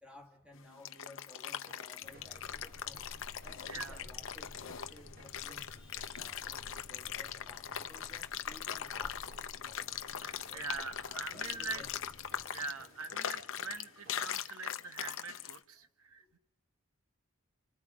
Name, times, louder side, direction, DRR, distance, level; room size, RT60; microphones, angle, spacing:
voice 1, 0.0-3.0 3.4-10.6 11.1-11.9 12.6-12.7 15.0-15.2 16.2-16.3, left 1 dB, 5° right, 3 dB, 2.0 m, -57 dB
sound 1, 0.5-15.6, left 9 dB, 65° left, 0.8 m, -41 dB
sound 2, 1.6-14.4, right 1 dB, 45° right, 2.5 m, -62 dB
sound 3, 2.0-12.5, left 2 dB, 85° left, 1.0 m, -54 dB
voice 2, 3.7-4.0 10.2-11.8 12.5-16.4, right 4 dB, 85° right, 10 dB, 1.2 m, -43 dB
28.5 x 26.0 x 5.0 m, 0.86 s
head